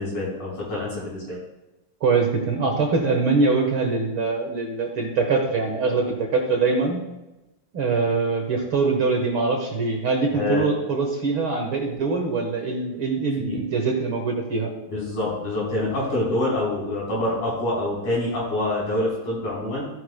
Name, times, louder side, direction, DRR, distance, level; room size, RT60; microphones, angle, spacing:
voice 1, 0.0-1.4 10.3-10.6 13.4-13.6 14.9-19.8, left 2 dB, 60° left, -7 dB, 5.3 m, -26 dB
voice 2, 2.0-7.0 7.7-14.7, right 4 dB, 55° right, 2 dB, 1.5 m, -23 dB
16.0 x 9.5 x 2.2 m, 0.99 s
omnidirectional pair, 3.8 m